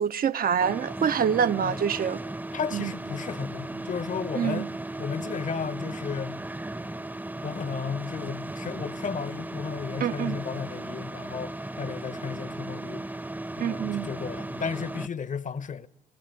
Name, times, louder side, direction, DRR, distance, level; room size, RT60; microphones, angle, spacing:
voice 1, 0.0-2.2 2.7-2.9 4.4-4.7 10.0-10.4 13.6-14.1, right 8 dB, 50° right, 0.9 m, -26 dB
sound 1, 0.6-15.1, right 2 dB, 10° right, 0.9 m, -36 dB
voice 2, 2.5-4.7 5.0-6.4 7.4-13.1 13.6-15.9, left 6 dB, 40° left, 1.2 m, -34 dB
30.0 x 19.0 x 8.2 m
figure-of-eight pair, 45°, 20 cm